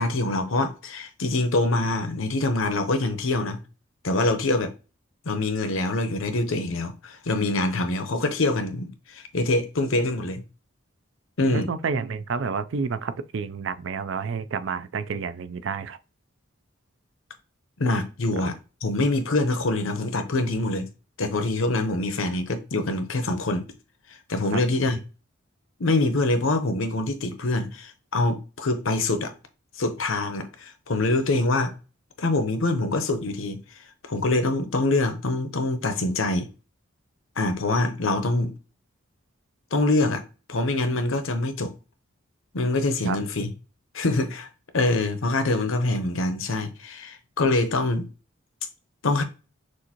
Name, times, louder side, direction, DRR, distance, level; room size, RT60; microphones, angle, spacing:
voice 1, 0.0-3.6 4.0-4.7 5.3-10.4 11.4-11.7 17.8-18.6 18.8-20.9 21.2-23.7 24.3-25.0 25.8-29.3 29.8-31.7 32.2-33.6 34.1-36.5 37.4-38.5 39.7-40.2 40.5-41.7 42.5-43.5 43.9-44.5 44.7-48.1 49.0-49.2, left 2 dB, 75° left, 0.8 m, -25 dB
voice 2, 11.5-16.0 18.3-18.4 24.5-24.6 43.0-43.2, right 5 dB, 65° right, 0.4 m, -29 dB
6.3 x 2.6 x 2.9 m
head